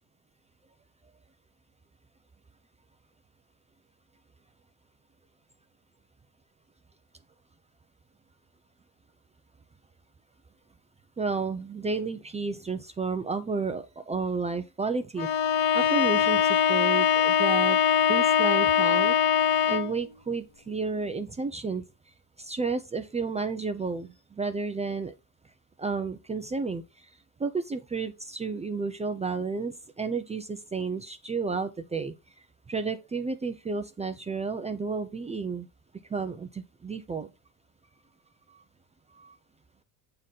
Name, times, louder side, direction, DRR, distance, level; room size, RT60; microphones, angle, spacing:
voice 1, 11.2-17.8 18.1-19.2 19.7-21.8 22.4-25.1 25.8-27.1 27.4-32.1 32.7-35.7 36.1-37.3 38.5-38.6 39.2-39.4, right 4 dB, 15° right, 0.5 m, -32 dB
Bowed string instrument, 15.2-20.0, left 8 dB, 60° left, 1.0 m, -22 dB
7.3 x 3.9 x 4.1 m
supercardioid pair, 90°, 43 cm